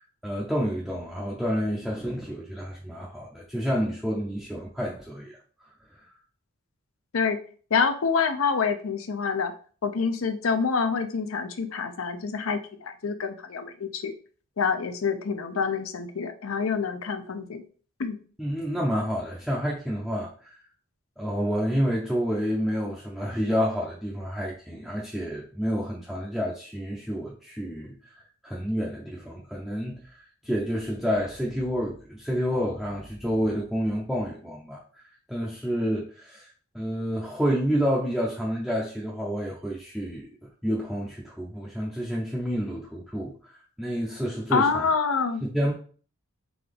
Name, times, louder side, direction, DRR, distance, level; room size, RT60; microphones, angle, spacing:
voice 1, 0.0-5.4 18.4-20.6 21.2-27.9 28.4-30.2 30.4-35.0 35.3-36.5 36.7-40.3 40.6-44.9 45.4-45.7, equal, ahead, -5 dB, 0.5 m, -29 dB
voice 2, 7.7-9.5 9.8-14.1 14.6-17.6 18.0-18.2 44.5-45.4, left 5 dB, 65° left, 9 dB, 0.5 m, -26 dB
3.9 x 3.4 x 3.4 m, 0.42 s
head